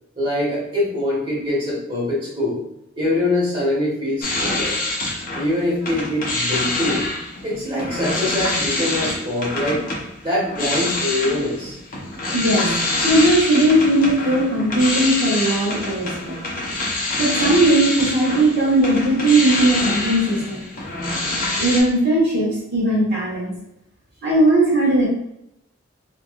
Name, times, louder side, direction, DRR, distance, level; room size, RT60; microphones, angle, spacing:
voice 1, 0.2-2.6 3.0-4.8 5.3-7.0 7.4-9.9 10.2-11.8, left 1 dB, 25° right, -7 dB, 1.3 m, -23 dB
sound 1, 4.2-5.5 5.8-21.8, left 2 dB, 45° left, 0.7 m, -25 dB
voice 2, 12.3-12.7 13.0-16.3 17.2-20.6 21.6-23.5 24.2-25.0, right 1 dB, 55° right, -6 dB, 1.1 m, -18 dB
3.2 x 2.7 x 2.3 m, 0.82 s
head